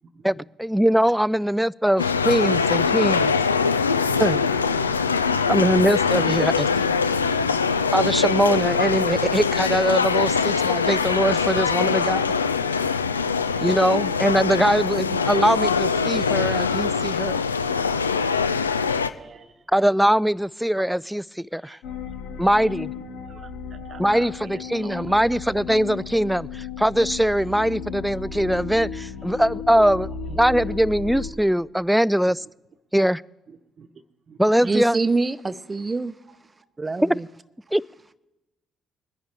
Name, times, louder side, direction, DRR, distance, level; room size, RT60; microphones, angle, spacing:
voice 1, 0.2-3.3 4.2-4.4 5.5-6.7 7.9-12.2 13.6-17.4 19.7-21.8 22.4-22.9 24.0-32.4 32.9-33.2 34.4-35.0 37.0-37.1 37.7-37.8, equal, 5° right, 0.3 m, -22 dB
sound 1, 2.0-19.1, left 5 dB, 90° left, 0.3 m, -23 dB
voice 2, 18.9-19.5 21.6-21.8 23.3-23.5 23.9-25.0 29.8-29.9 33.8-33.9 34.3-34.4 34.7-34.8, right 6 dB, 45° right, 1.0 m, -43 dB
sound 2, 21.8-31.3, left 5 dB, 65° left, 1.2 m, -34 dB
voice 3, 34.6-36.1 36.8-37.3, right 3 dB, 25° right, 0.7 m, -25 dB
23.0 x 10.5 x 3.4 m
figure-of-eight pair, 45°, 0 cm